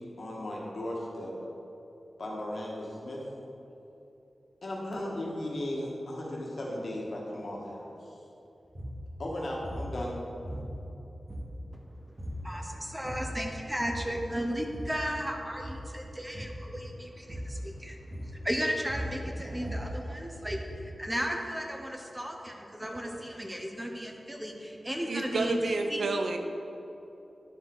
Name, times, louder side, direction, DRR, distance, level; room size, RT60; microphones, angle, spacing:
voice 1, 0.0-1.3 2.2-3.2 4.6-7.9 9.2-10.2 12.5-12.6, left 1 dB, 70° left, -3 dB, 1.5 m, -36 dB
sound 1, 8.7-9.0 9.6-9.9 10.4-11.0 11.3-11.8 12.2-12.5 12.9-13.4 13.8-14.2 14.5-15.0 15.5-15.9 16.3-16.6 17.3-17.6 18.1-18.5 18.8-20.8, equal, 30° right, 1.5 m, -39 dB
voice 2, 12.4-18.0 18.3-20.6 21.0-26.0, equal, 10° right, 2 dB, 0.7 m, -35 dB
voice 3, 25.1-26.4, right 3 dB, 85° right, 5 dB, 0.5 m, -30 dB
10.0 x 4.8 x 3.9 m, 2.9 s
wide cardioid pair, 95°, 0 cm